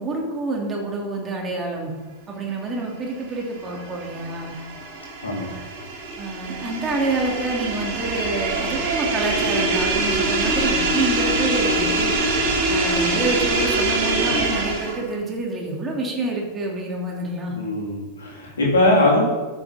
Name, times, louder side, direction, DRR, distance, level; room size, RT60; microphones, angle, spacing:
voice 1, 0.0-1.9 2.3-4.6 6.2-12.1 12.7-17.6, right 2 dB, 20° right, -1 dB, 2.8 m, -27 dB
sound 1, 3.2-15.1, right 2 dB, 50° right, 2.1 m, -24 dB
voice 2, 17.5-19.2, left 1 dB, 70° left, -3 dB, 3.6 m, -20 dB
13.0 x 6.6 x 4.3 m, 1.3 s
figure-of-eight pair, 90°, 0 cm